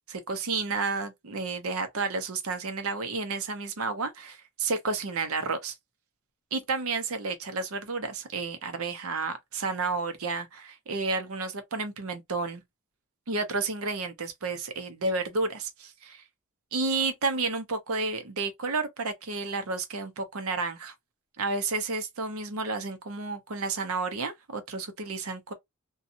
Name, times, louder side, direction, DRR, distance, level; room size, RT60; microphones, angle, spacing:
voice 1, 0.1-5.7 6.5-12.6 13.3-16.2 16.7-20.9 21.4-25.5, right 3 dB, 75° right, 0.7 m, -31 dB
2.7 x 2.3 x 2.5 m
head